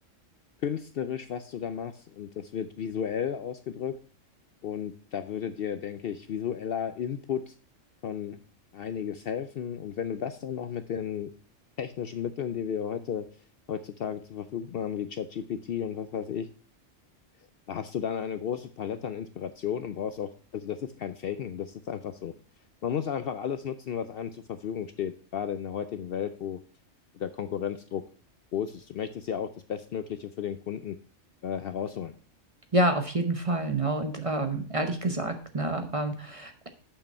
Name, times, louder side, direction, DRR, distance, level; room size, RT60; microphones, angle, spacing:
voice 1, 0.6-4.0 4.6-7.5 8.0-8.4 8.7-11.3 11.8-13.3 13.7-16.5 17.7-22.3 22.8-26.6 27.1-28.0 28.5-31.0 31.4-32.1, left 8 dB, 60° left, 10 dB, 0.7 m, -33 dB
voice 2, 32.7-36.7, right 2 dB, 30° right, 6 dB, 0.7 m, -28 dB
6.8 x 5.8 x 5.3 m, 0.42 s
omnidirectional pair, 1.3 m